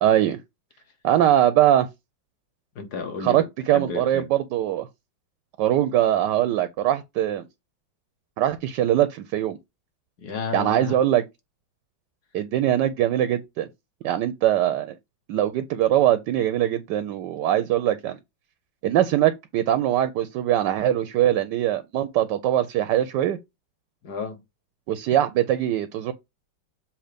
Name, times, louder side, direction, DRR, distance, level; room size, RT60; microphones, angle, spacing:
voice 1, 0.0-0.4 1.0-1.9 3.2-4.9 5.6-7.4 8.4-9.6 10.5-11.2 12.3-13.7 14.0-15.0 15.3-18.2 18.8-23.4 24.9-26.1, right 12 dB, 75° right, 1.1 m, -22 dB
voice 2, 2.7-3.5 3.7-4.3 10.2-11.0 24.0-24.4, left 4 dB, 55° left, 1.7 m, -32 dB
7.3 x 2.8 x 5.0 m
omnidirectional pair, 2.1 m